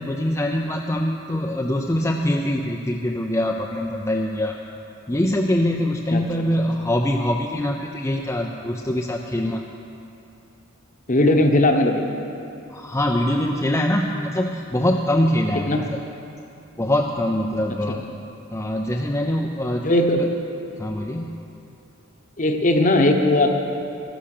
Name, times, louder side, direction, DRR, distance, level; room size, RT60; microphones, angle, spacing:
voice 1, 0.0-4.6 5.1-9.7 12.7-16.0 16.8-18.1 18.5-19.9 20.1-20.3 20.8-21.3, left 1 dB, 10° left, 0 dB, 0.5 m, -23 dB
voice 2, 11.1-12.0 15.6-15.8 17.9-18.0 19.8-20.2 22.4-23.5, left 1 dB, 35° left, 4 dB, 1.0 m, -18 dB
13.0 x 11.5 x 6.6 m, 2.8 s
head